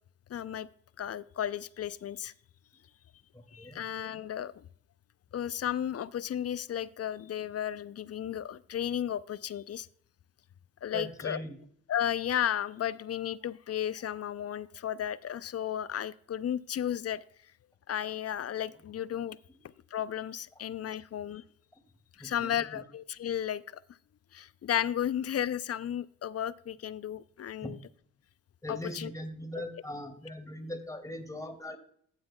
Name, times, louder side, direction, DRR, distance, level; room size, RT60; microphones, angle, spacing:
voice 1, 0.3-0.7 1.0-2.3 3.5-4.6 5.3-9.9 10.8-11.4 11.9-17.2 17.9-19.4 19.9-21.4 22.2-23.8 24.3-27.8 28.7-29.1, left 10 dB, 40° left, 18 dB, 0.5 m, -34 dB
voice 2, 3.3-3.8 10.9-11.6 19.5-19.6 21.7-21.8 22.2-22.8 27.6-27.8 28.6-31.8, left 1 dB, 10° left, 6 dB, 2.1 m, -40 dB
14.5 x 7.7 x 2.3 m, 0.62 s
hypercardioid pair, 45°, 37 cm